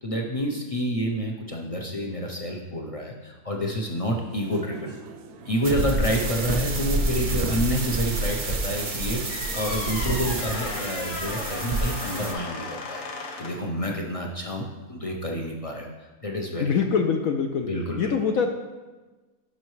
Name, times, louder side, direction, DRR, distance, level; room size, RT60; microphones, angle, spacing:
voice 1, 0.0-4.9 5.5-13.1 13.4-15.9 16.2-16.7 17.6-18.1, equal, 45° left, 1 dB, 0.4 m, -29 dB
sound 1, 3.8-11.4, right 4 dB, 75° right, 1.1 m, -45 dB
sound 2, 5.6-12.3, right 2 dB, 45° right, 0.4 m, -28 dB
sound 3, 9.3-13.7, left 3 dB, 90° left, 1.5 m, -35 dB
voice 2, 16.6-17.7 18.0-18.5, left 6 dB, 70° left, 4 dB, 0.9 m, -23 dB
12.0 x 5.4 x 3.1 m, 1.2 s
omnidirectional pair, 1.7 m